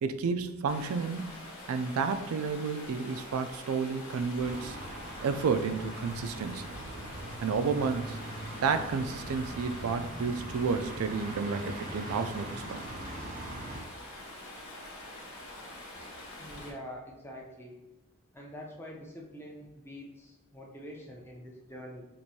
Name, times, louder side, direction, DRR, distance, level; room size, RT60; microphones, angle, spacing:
voice 1, 0.0-1.3 1.7-4.8 5.2-6.7 7.4-8.2 8.6-12.9, right 5 dB, 80° right, 9 dB, 0.3 m, -31 dB
Stream, 0.7-16.7, left 1 dB, 75° left, 1.1 m, -45 dB
sound 1, 4.4-13.8, right 1 dB, 35° right, 0.6 m, -42 dB
voice 2, 16.4-17.8 18.3-22.1, equal, 10° left, -1 dB, 0.5 m, -45 dB
4.5 x 2.6 x 2.7 m, 0.95 s
head